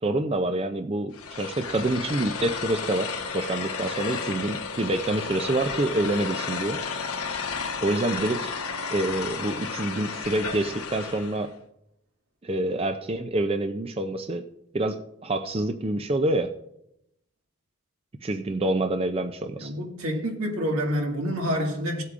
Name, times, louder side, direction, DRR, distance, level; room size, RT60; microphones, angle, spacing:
voice 1, 0.0-6.8 7.8-8.4 8.9-11.5 12.4-14.4 14.7-16.5 18.2-19.7, right 2 dB, 25° right, 0.4 m, -27 dB
sound 1, 1.1-11.5, left 5 dB, 85° left, 1.1 m, -33 dB
voice 2, 19.6-22.0, equal, 80° right, 1.9 m, -28 dB
16.5 x 8.1 x 2.5 m
head